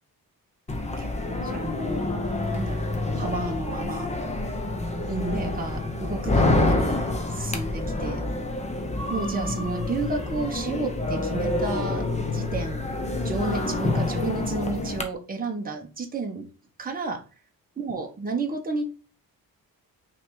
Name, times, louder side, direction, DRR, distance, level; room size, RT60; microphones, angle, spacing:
sound 1, 0.7-15.0, left 2 dB, 20° left, 0.8 m, -27 dB
voice 1, 0.9-2.0 2.5-4.1 5.1-7.0 7.3-8.2 9.1-12.1 12.3-12.9 13.2-16.5 16.8-17.2 17.8-18.9, right 3 dB, 25° right, 2 dB, 1.1 m, -31 dB
5.8 x 3.4 x 4.8 m, 0.35 s
wide cardioid pair, 165°, 36 cm